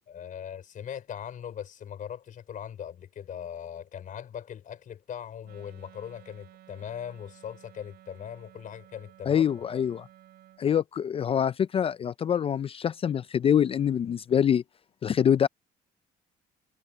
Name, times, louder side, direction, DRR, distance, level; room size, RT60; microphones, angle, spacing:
voice 1, 0.1-9.4 9.7-9.8, left 9 dB, 50° left, 4.7 m, -40 dB
Wind instrument woodwind instrument, 5.4-10.6, right 13 dB, 70° right, 5.1 m, -54 dB
voice 2, 9.3-10.0 10.6-14.6 15.0-15.5, left 8 dB, 35° left, 0.4 m, -25 dB
cardioid pair, 110°, 17 cm